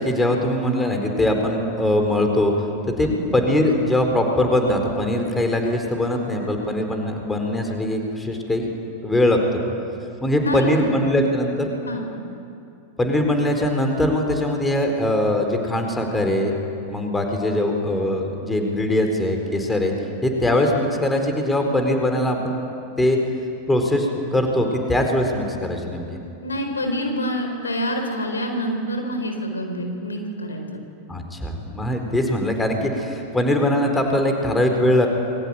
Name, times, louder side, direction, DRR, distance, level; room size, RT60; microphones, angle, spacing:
voice 1, 0.0-2.5 2.9-8.7 9.0-9.4 10.2-11.7 13.0-16.5 16.9-19.9 20.2-22.6 23.0-23.2 23.7-26.2 31.1-35.1, left 1 dB, 10° left, 4 dB, 4.3 m, -21 dB
voice 2, 10.4-11.1 11.9-12.1 26.4-30.8, equal, 75° left, 4 dB, 4.4 m, -27 dB
28.0 x 22.5 x 9.1 m, 2.5 s
figure-of-eight pair, 90°, 0 cm